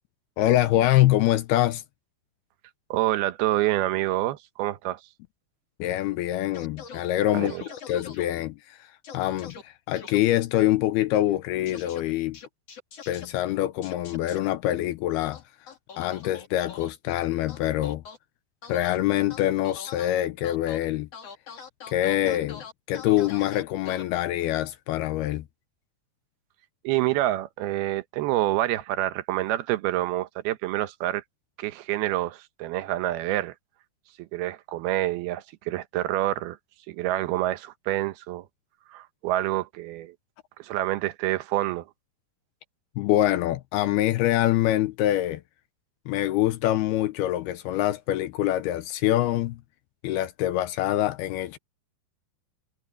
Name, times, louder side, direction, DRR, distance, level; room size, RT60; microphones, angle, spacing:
voice 1, 0.4-1.8 5.8-7.5 7.9-8.9 9.1-12.4 13.1-15.4 16.0-18.0 18.7-21.1 21.9-25.4 43.0-45.4 46.1-49.6 50.0-51.6, left 14 dB, 80° left, 2.5 m, -25 dB
voice 2, 2.9-5.0 7.3-7.6 26.8-31.2 31.6-33.5 34.2-36.6 36.9-38.5 38.9-40.1 40.6-41.9, right 15 dB, 75° right, 2.7 m, -27 dB
sound 1, 6.5-7.0 7.5-8.3 9.0-9.6 10.0-10.2 11.7-12.0 12.3-13.3 13.8-14.4 15.2-16.9 17.5-18.2 18.6-19.0 19.3-20.1 20.4-20.8 21.1-24.0, left 6 dB, 40° left, 3.0 m, -42 dB
omnidirectional pair, 4.9 m